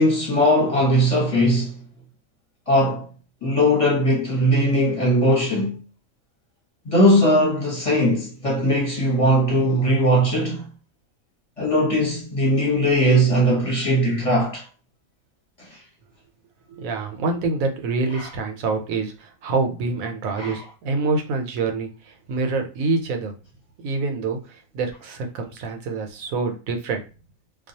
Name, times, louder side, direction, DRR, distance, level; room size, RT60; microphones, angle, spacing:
voice 1, 0.0-1.8 2.7-3.1 3.4-5.8 6.8-10.6 11.6-14.6 15.6-15.8 18.1-18.3 20.3-20.7, equal, 30° left, 0.9 m, -19 dB
voice 2, 16.7-23.3 23.8-24.4 24.7-27.0, right 3 dB, 90° right, 1.0 m, -26 dB
2.3 x 2.3 x 2.7 m
omnidirectional pair, 1.4 m